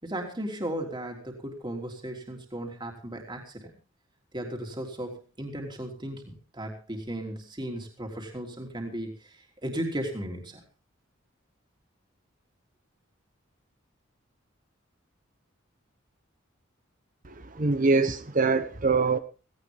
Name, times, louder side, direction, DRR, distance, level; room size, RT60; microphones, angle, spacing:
voice 1, 0.0-3.7 4.3-10.6, right 1 dB, 25° right, 2 dB, 3.3 m, -36 dB
voice 2, 17.3-19.2, right 4 dB, 40° right, 11 dB, 1.1 m, -24 dB
17.5 x 17.5 x 3.6 m, 0.33 s
head